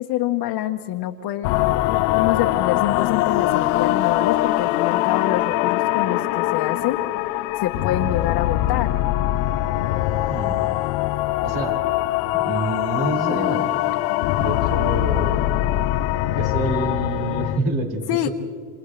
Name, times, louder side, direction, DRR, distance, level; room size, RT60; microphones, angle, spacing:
voice 1, 0.0-7.0 7.5-9.0 18.1-18.3, left 12 dB, 55° left, 3 dB, 1.4 m, -26 dB
sound 1, 1.4-17.6, left 15 dB, 75° left, 0.9 m, -22 dB
voice 2, 10.3-10.6 11.4-11.9 12.3-13.9 14.4-15.6 16.3-18.3, right 2 dB, 55° right, 1 dB, 5.5 m, -27 dB
28.5 x 27.5 x 3.3 m, 2.2 s
supercardioid pair, 110°, 46 cm